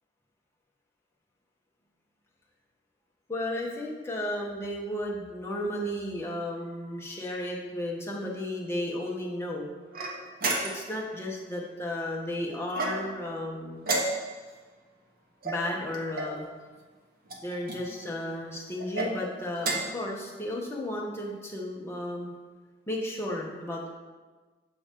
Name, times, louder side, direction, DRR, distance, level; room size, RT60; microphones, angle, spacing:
voice 1, 3.3-9.7 10.6-13.9 15.4-16.5 17.4-22.3 22.9-23.9, left 1 dB, 15° left, -3 dB, 0.9 m, -34 dB
sound 1, 9.9-11.0 12.7-13.3 13.8-14.5 15.4-16.4 17.3-17.8 18.8-19.1 19.6-20.0, right 2 dB, 50° right, 0.9 m, -31 dB
7.5 x 2.9 x 5.1 m, 1.4 s
head